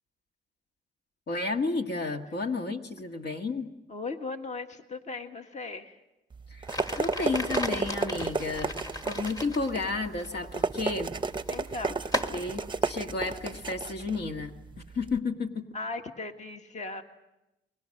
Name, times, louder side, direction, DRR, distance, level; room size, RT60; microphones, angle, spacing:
voice 1, 1.3-3.7 6.5-6.7 7.0-11.1 12.3-14.6 14.9-15.7, left 3 dB, 55° left, 4 dB, 1.8 m, -32 dB
voice 2, 3.9-6.0 11.5-12.0 15.7-17.0, left 3 dB, 35° left, 6 dB, 1.7 m, -37 dB
sound 1, 6.3-15.2, right 4 dB, 25° right, 0.8 m, -33 dB
sound 2, 6.7-13.9, left 1 dB, 20° left, 1.7 m, -38 dB
29.5 x 21.5 x 6.6 m, 0.96 s
cardioid pair, 90°, 20 cm